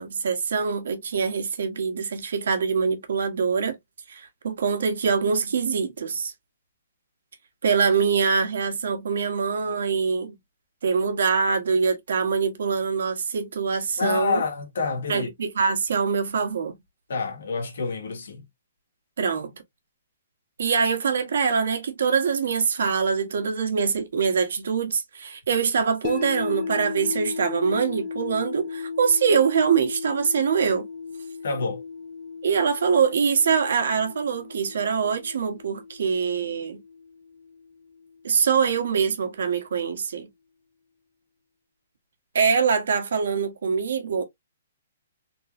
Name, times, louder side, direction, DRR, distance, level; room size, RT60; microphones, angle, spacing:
voice 1, 0.0-3.8 4.1-6.3 7.6-10.4 10.8-14.4 15.1-16.8 19.2-19.5 20.6-30.9 32.4-36.8 38.2-40.3 42.3-44.2, right 6 dB, 70° right, 1.3 m, -24 dB
voice 2, 14.0-15.3 17.1-18.4 31.4-31.8, left 4 dB, 70° left, 1.6 m, -28 dB
sound 1, 26.0-38.2, left 5 dB, 25° left, 0.6 m, -36 dB
3.7 x 3.1 x 2.6 m
hypercardioid pair, 175°, 0 cm